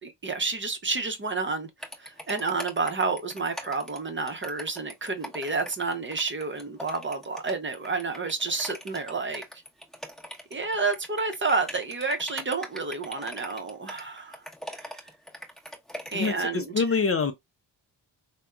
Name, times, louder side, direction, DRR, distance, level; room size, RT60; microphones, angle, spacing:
voice 1, 0.0-1.7 2.0-9.4 10.5-14.4 14.7-14.9 16.1-16.8, right 4 dB, 30° right, 0.7 m, -30 dB
sound 1, 1.8-16.4, equal, ahead, 1.0 m, -41 dB
voice 2, 16.1-17.3, left 5 dB, 35° left, 0.5 m, -25 dB
3.4 x 2.1 x 2.2 m
supercardioid pair, 55°, 42 cm